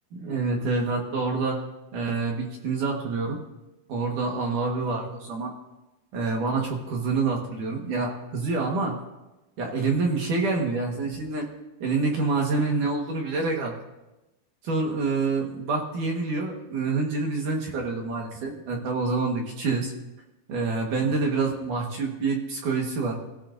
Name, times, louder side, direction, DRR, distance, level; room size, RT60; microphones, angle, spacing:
voice 1, 0.1-1.6 1.9-3.4 3.9-5.5 6.1-9.0 9.6-11.5 11.8-13.8 14.6-19.9 20.5-23.2, right 3 dB, 65° right, 0 dB, 2.1 m, -27 dB
27.5 x 15.5 x 2.6 m, 1.0 s
omnidirectional pair, 5.7 m